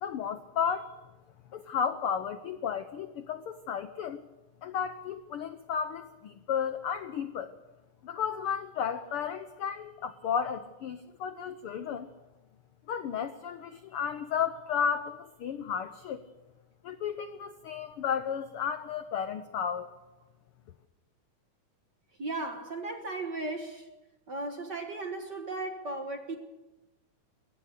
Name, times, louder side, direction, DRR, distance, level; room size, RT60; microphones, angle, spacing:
voice 1, 0.0-0.9 1.5-4.2 4.6-7.5 8.0-12.1 12.9-16.2 16.8-19.9, left 7 dB, 80° left, 1.2 m, -33 dB
voice 2, 22.2-23.9 24.3-26.4, right 2 dB, 45° right, 1.5 m, -36 dB
22.5 x 17.5 x 6.7 m
omnidirectional pair, 3.7 m